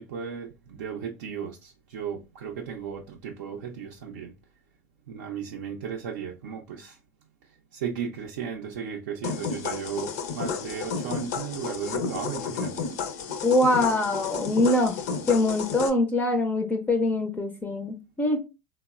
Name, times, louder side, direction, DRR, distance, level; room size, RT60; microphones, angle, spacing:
voice 1, 0.0-4.3 5.1-7.0 7.7-12.8, right 7 dB, 85° right, 0.5 m, -35 dB
sound 1, 9.2-15.9, left 5 dB, 80° left, 0.5 m, -32 dB
voice 2, 13.4-15.0 15.3-18.4, left 2 dB, 15° left, 0.4 m, -23 dB
3.0 x 2.0 x 2.3 m
supercardioid pair, 110°, 9 cm